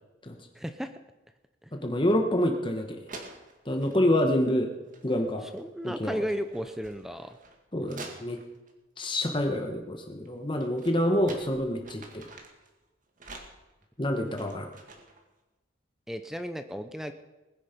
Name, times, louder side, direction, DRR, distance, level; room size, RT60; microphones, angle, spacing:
voice 1, 0.5-0.9 1.6-1.7 5.5-7.4 16.1-17.1, equal, ahead, 9 dB, 0.6 m, -34 dB
voice 2, 1.7-3.0 3.6-4.7 5.0-5.5 5.8-6.2 7.7-8.4 9.0-12.3 14.0-14.7, left 1 dB, 25° left, 4 dB, 1.2 m, -27 dB
sound 1, 2.6-2.7 3.1-4.0 4.8-5.3 5.5-8.7 10.3-12.7 13.2-15.2, right 3 dB, 40° right, 2.0 m, -48 dB
20.0 x 10.5 x 5.2 m, 1.1 s
head